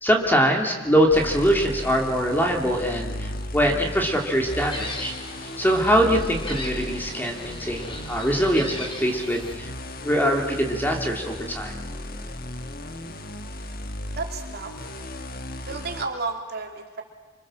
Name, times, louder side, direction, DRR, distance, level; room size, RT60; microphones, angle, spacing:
voice 1, 0.0-5.1 5.6-9.7 10.0-11.7, equal, 10° left, 2 dB, 2.6 m, -23 dB
sound 1, 1.1-16.1, left 1 dB, 50° left, 1.5 m, -35 dB
Gull seagull, 4.4-9.5, left 1 dB, 25° left, 3.8 m, -38 dB
voice 2, 14.2-14.9 15.7-17.0, right 4 dB, 50° right, 2 dB, 3.3 m, -32 dB
27.0 x 25.5 x 7.6 m, 1.4 s
head